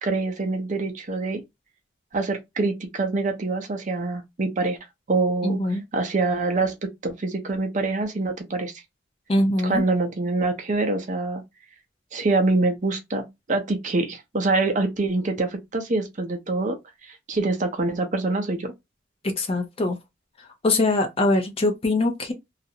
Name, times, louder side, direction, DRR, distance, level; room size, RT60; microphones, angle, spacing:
voice 1, 0.0-1.4 2.1-4.8 5.1-6.8 7.0-8.7 9.6-11.4 12.1-16.8 17.0-18.7, right 3 dB, 40° right, 0.6 m, -25 dB
voice 2, 5.4-5.8 9.3-9.8 19.2-20.0 20.6-22.3, left 2 dB, 30° left, 0.5 m, -22 dB
2.4 x 2.0 x 2.7 m
head